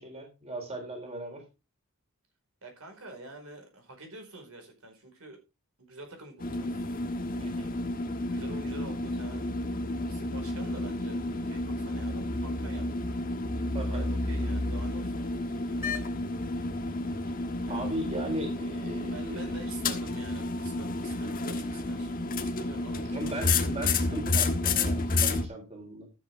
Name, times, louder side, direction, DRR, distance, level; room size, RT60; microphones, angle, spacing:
voice 1, 0.0-1.4 7.4-7.7 13.7-14.0 17.7-19.4 23.1-26.1, right 1 dB, 30° right, 2 dB, 3.8 m, -37 dB
voice 2, 2.6-5.4 5.8-6.9 8.3-9.5 10.0-13.1 13.8-15.7 17.6-17.9 19.0-22.1 22.4-23.7, right 2 dB, 75° right, 5 dB, 4.8 m, -47 dB
sound 1, 6.4-25.5, left 2 dB, 40° left, 1.3 m, -31 dB
13.5 x 7.8 x 3.5 m, 0.27 s
head